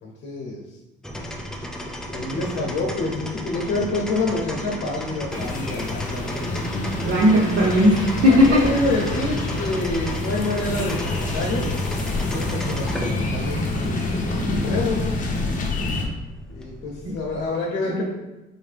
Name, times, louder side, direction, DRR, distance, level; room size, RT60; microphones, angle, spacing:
voice 1, 0.0-0.6 2.1-6.4 8.3-11.7 12.3-15.0 16.5-18.1, left 2 dB, 75° left, -3 dB, 0.9 m, -27 dB
sound 1, 1.0-17.5, equal, 5° left, 0.3 m, -34 dB
Ambience - Leaves in wind birds power tools, 5.3-16.1, left 2 dB, 40° left, 0.7 m, -27 dB
voice 2, 7.0-8.6 17.8-18.1, left 1 dB, 75° right, -6 dB, 0.9 m, -17 dB
4.4 x 2.7 x 3.3 m, 1.0 s
cardioid pair, 150°, 20 cm